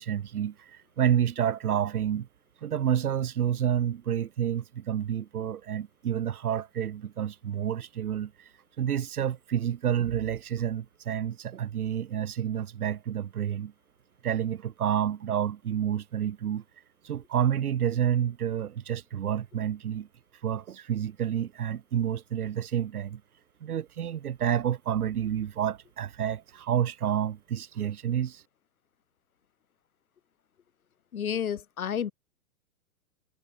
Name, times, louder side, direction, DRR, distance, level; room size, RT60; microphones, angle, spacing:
voice 1, 0.0-2.3 2.6-8.5 8.8-13.7 14.2-16.6 17.0-20.1 20.4-23.2 23.6-28.4, right 9 dB, 85° right, 1.2 m, -29 dB
voice 2, 31.1-32.1, left 8 dB, 75° left, 3.0 m, -30 dB
hypercardioid pair, 165°, 43 cm